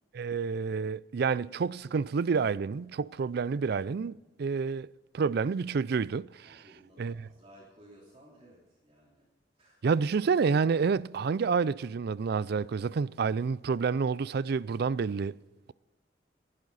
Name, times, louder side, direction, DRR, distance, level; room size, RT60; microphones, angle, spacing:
voice 1, 0.1-4.9 5.1-6.6 7.0-7.3 9.8-15.4, right 5 dB, 60° right, 0.4 m, -29 dB
voice 2, 6.4-9.3 9.6-9.9, right 1 dB, 35° right, 3.2 m, -57 dB
21.0 x 11.5 x 4.1 m
head